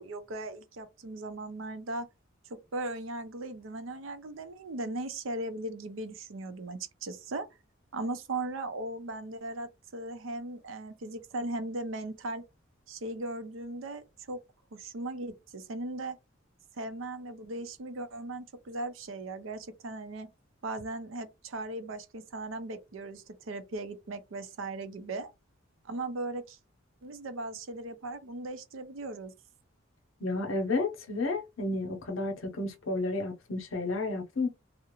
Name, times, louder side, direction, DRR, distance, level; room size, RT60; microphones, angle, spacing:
voice 1, 0.0-2.1 2.5-7.5 7.9-12.4 12.9-14.4 14.7-16.2 16.8-20.3 20.6-25.3 25.8-26.6 27.0-29.3, right 2 dB, 75° right, 0.5 m, -38 dB
voice 2, 30.2-34.5, left 2 dB, 80° left, 0.7 m, -31 dB
2.4 x 2.0 x 2.9 m
head